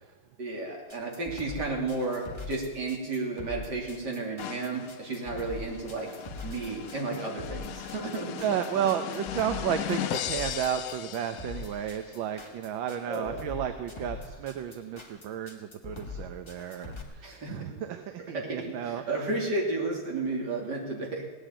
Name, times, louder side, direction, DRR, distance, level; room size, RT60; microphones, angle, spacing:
voice 1, 0.4-6.1 6.4-8.6 13.1-13.5 17.2-17.7 18.3-21.3, right 2 dB, 55° right, 0 dB, 3.5 m, -33 dB
sound 1, 0.9-17.0, left 3 dB, 15° left, 1.7 m, -42 dB
sound 2, 4.4-12.0, left 10 dB, 75° left, 0.8 m, -37 dB
voice 2, 4.6-4.9 8.4-19.3, right 9 dB, 75° right, 8 dB, 1.6 m, -33 dB
17.5 x 8.9 x 9.1 m, 1.3 s
omnidirectional pair, 2.2 m